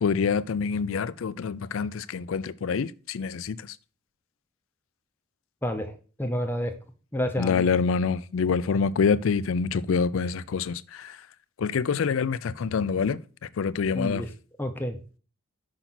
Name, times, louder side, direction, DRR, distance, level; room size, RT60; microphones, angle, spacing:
voice 1, 0.0-3.8 7.4-11.2 11.6-13.2 13.6-14.2, left 5 dB, 75° left, 0.4 m, -26 dB
voice 2, 5.6-6.7 7.1-7.7 13.9-14.3 14.6-15.0, equal, 10° left, 0.7 m, -29 dB
5.9 x 5.7 x 3.9 m
head